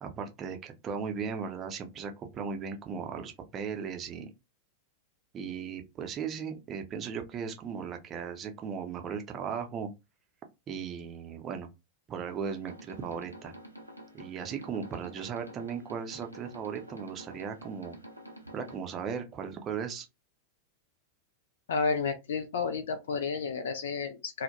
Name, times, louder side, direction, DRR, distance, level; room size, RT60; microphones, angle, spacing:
voice 1, 0.0-4.3 5.3-9.9 10.7-11.7 12.1-13.5 14.1-18.0 18.5-20.1, right 6 dB, 30° right, 0.5 m, -37 dB
sound 1, 12.3-18.8, right 1 dB, 85° right, 0.5 m, -49 dB
voice 2, 21.7-24.4, left 4 dB, 60° left, 0.3 m, -31 dB
2.2 x 2.1 x 2.8 m
figure-of-eight pair, 90°, 0 cm